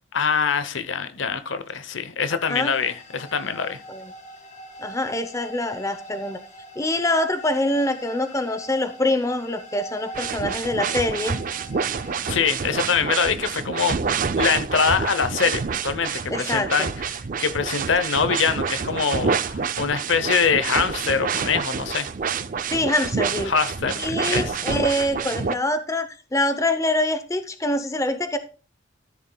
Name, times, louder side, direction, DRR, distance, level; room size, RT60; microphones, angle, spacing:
voice 1, 0.1-3.8 12.3-16.9 17.4-22.1 23.5-24.6, left 6 dB, 80° left, 0.8 m, -24 dB
voice 2, 2.3-2.7 3.9-4.1 4.8-6.4 6.8-11.4 16.3-16.7 22.7-23.5 24.0-28.4, left 1 dB, 15° left, 0.7 m, -25 dB
sound 1, 2.4-12.4, right 1 dB, 40° left, 1.8 m, -42 dB
sound 2, 10.1-25.5, right 6 dB, 45° right, 0.4 m, -27 dB
13.0 x 7.0 x 2.3 m
head